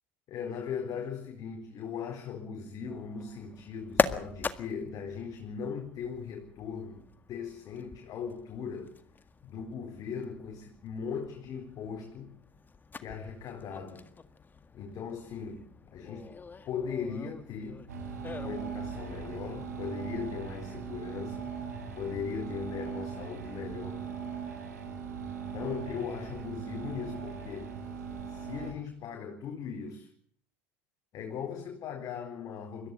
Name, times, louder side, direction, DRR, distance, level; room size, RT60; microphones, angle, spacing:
voice 1, 0.3-9.0 9.4-12.3 13.0-14.1 14.7-16.3 16.7-17.8 18.4-21.5 21.9-24.1 25.5-27.7 28.3-30.1 31.1-32.9, left 6 dB, 45° left, 4.1 m, -39 dB
sound 1, 2.9-19.8, left 4 dB, 20° left, 1.8 m, -40 dB
sound 2, 17.9-28.7, right 6 dB, 90° right, 6.9 m, -39 dB
21.5 x 15.5 x 9.8 m
hypercardioid pair, 85°, 9 cm